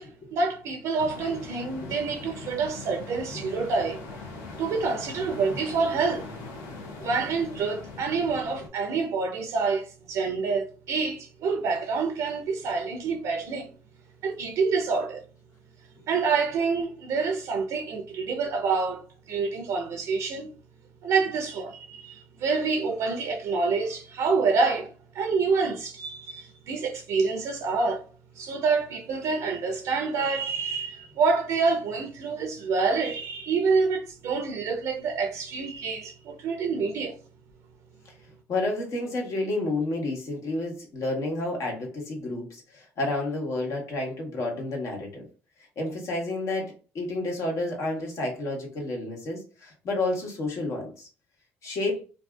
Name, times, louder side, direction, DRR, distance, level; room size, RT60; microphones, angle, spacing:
voice 1, 0.0-4.0 4.6-6.3 7.0-13.7 14.2-15.2 16.1-20.5 21.0-28.1 28.3-37.2, right 4 dB, 70° right, 0.5 m, -27 dB
sound 1, 1.0-8.7, left 3 dB, 85° left, 0.5 m, -41 dB
voice 2, 38.5-45.2 45.8-51.1 51.6-52.0, left 2 dB, 65° left, 1.0 m, -30 dB
2.6 x 2.4 x 2.2 m
supercardioid pair, 70°, 6 cm